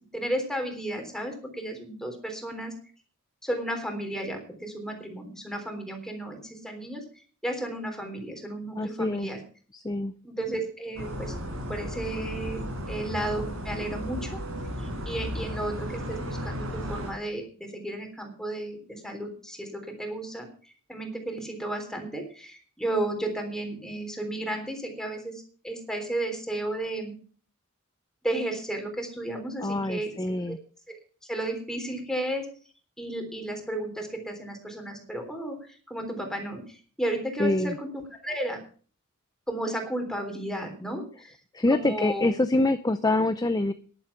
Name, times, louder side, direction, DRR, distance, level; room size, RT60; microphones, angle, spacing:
voice 1, 0.1-2.7 3.4-7.0 7.4-9.4 10.2-11.3 11.7-14.4 14.8-20.5 20.9-27.1 28.2-30.1 30.5-30.6 31.3-32.5 33.0-37.9 38.2-38.6 39.5-41.4 41.7-42.3, right 1 dB, 5° left, 3 dB, 3.5 m, -33 dB
voice 2, 8.8-9.3 9.7-10.1 29.6-30.6 37.4-37.8 41.5-43.7, left 2 dB, 20° left, 10 dB, 0.6 m, -25 dB
sound 1, 11.0-17.1, equal, 70° right, 5.2 m, -34 dB
11.0 x 11.0 x 5.9 m, 0.42 s
head